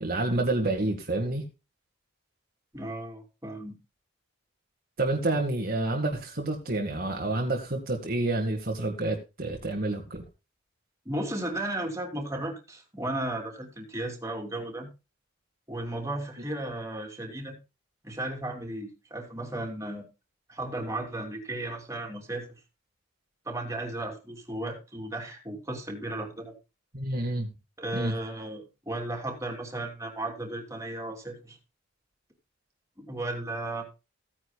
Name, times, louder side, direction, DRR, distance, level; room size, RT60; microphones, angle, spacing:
voice 1, 0.0-1.5 5.0-10.2 26.9-27.5 27.9-28.1, right 2 dB, 45° right, 2.0 m, -28 dB
voice 2, 2.7-3.7 11.0-14.9 15.7-17.6 18.0-20.0 20.5-22.5 23.4-26.5 27.8-31.6 33.0-33.9, right 1 dB, 15° right, 3.2 m, -35 dB
16.0 x 9.8 x 2.4 m
head